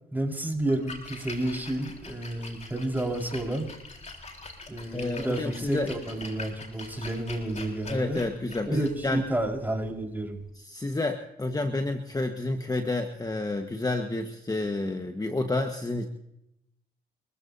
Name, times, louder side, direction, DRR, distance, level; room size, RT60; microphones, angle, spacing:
voice 1, 0.1-3.7 4.7-8.2 8.7-10.4, right 1 dB, 10° right, 1 dB, 5.1 m, -30 dB
Splash splatter, 0.6-10.5, left 3 dB, 40° left, 4.1 m, -44 dB
voice 2, 4.9-5.9 7.9-9.2 10.6-16.1, left 2 dB, 20° left, 5 dB, 1.5 m, -30 dB
29.0 x 14.5 x 2.8 m, 0.83 s
supercardioid pair, 60°, 19 cm